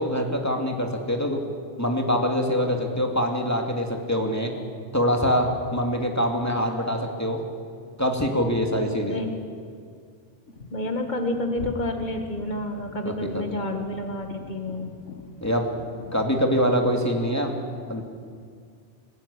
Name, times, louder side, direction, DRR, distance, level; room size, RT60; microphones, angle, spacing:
voice 1, 0.0-1.4 1.8-4.5 4.9-7.4 8.0-9.2 13.0-13.4 15.4-15.6 16.1-17.5 17.9-18.0, equal, 15° left, 2 dB, 2.5 m, -24 dB
sound 1, 10.5-16.3, left 2 dB, 80° left, 2.2 m, -42 dB
voice 2, 10.7-14.9, left 1 dB, 40° left, 4 dB, 2.1 m, -29 dB
25.0 x 14.5 x 9.9 m, 2.2 s
omnidirectional pair, 1.2 m